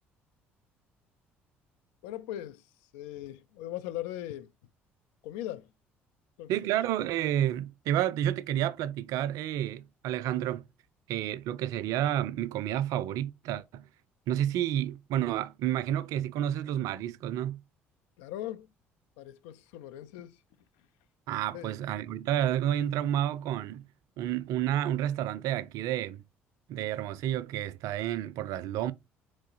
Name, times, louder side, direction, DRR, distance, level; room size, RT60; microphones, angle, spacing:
voice 1, 2.0-2.6 2.9-4.5 5.2-5.7 6.4-6.5 18.2-18.7 19.2-20.4 21.5-21.8, left 13 dB, 70° left, 0.4 m, -39 dB
voice 2, 6.5-10.6 11.1-13.8 14.3-17.6 21.3-23.8 24.2-26.2 26.7-28.9, right 11 dB, 65° right, 0.4 m, -30 dB
3.8 x 3.1 x 3.8 m
hypercardioid pair, 55°, 6 cm